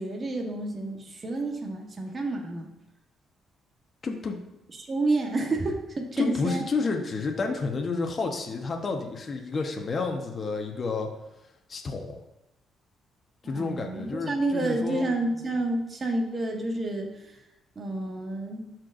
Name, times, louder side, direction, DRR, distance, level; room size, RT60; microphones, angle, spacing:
voice 1, 0.0-2.7 4.8-6.6 13.4-17.1 17.8-18.7, right 2 dB, 35° right, 2 dB, 1.2 m, -29 dB
voice 2, 4.0-4.4 6.2-11.1 11.7-12.2 13.4-15.0, left 4 dB, 40° left, 2 dB, 1.0 m, -30 dB
12.5 x 4.6 x 2.5 m, 0.92 s
cardioid pair, 90°, 0 cm